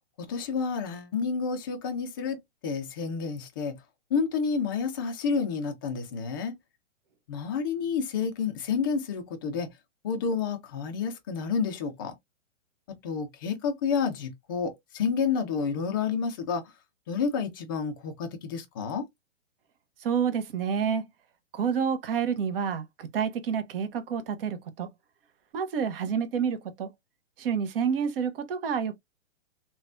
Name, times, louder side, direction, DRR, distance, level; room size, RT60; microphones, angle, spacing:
voice 1, 0.3-3.7 4.1-6.5 7.3-9.7 10.0-12.1 13.0-16.6 17.1-19.0, left 5 dB, 20° left, 0.3 m, -29 dB
voice 2, 20.0-21.0 21.5-24.9 25.5-26.9 27.4-28.9, right 7 dB, 50° right, 0.8 m, -28 dB
3.2 x 2.2 x 2.5 m
hypercardioid pair, 135°, 36 cm